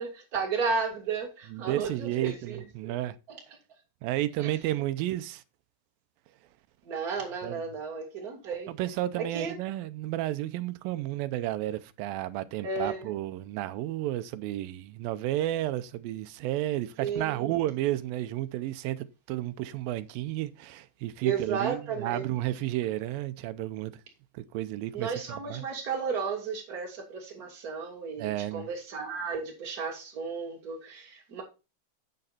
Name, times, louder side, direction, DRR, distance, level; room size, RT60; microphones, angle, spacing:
voice 1, 0.0-2.9 3.3-3.4 4.4-4.5 6.9-8.7 9.2-9.5 12.6-13.1 17.0-17.5 21.2-22.3 24.9-31.4, right 5 dB, 30° right, 2.2 m, -33 dB
voice 2, 1.5-3.2 4.0-5.4 7.4-7.7 8.7-23.9 24.3-25.7 28.2-28.7, right 14 dB, 90° right, 2.4 m, -32 dB
8.8 x 6.6 x 4.2 m
omnidirectional pair, 4.0 m